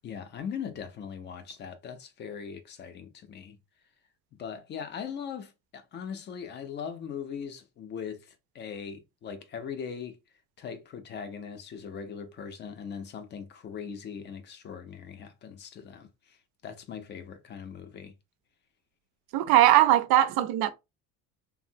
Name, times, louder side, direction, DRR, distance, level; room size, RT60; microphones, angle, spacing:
voice 1, 0.0-3.6 4.4-10.2 10.6-16.4 16.6-18.1, left 7 dB, 30° left, 0.4 m, -40 dB
voice 2, 19.3-20.7, right 13 dB, 75° right, 0.5 m, -20 dB
3.5 x 2.0 x 2.6 m
cardioid pair, 180°, 36 cm